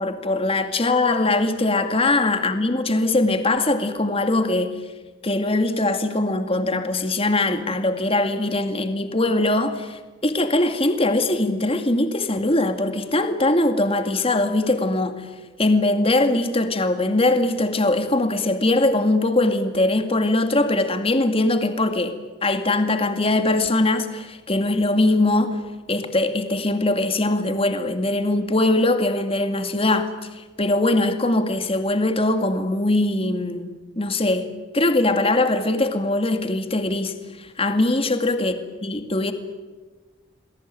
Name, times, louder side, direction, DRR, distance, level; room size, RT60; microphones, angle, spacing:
voice 1, 0.0-4.8 5.2-15.3 15.6-25.6 25.9-34.5 34.7-38.6 38.8-39.3, left 2 dB, 30° left, 7 dB, 2.3 m, -21 dB
28.5 x 21.5 x 9.2 m, 1.3 s
head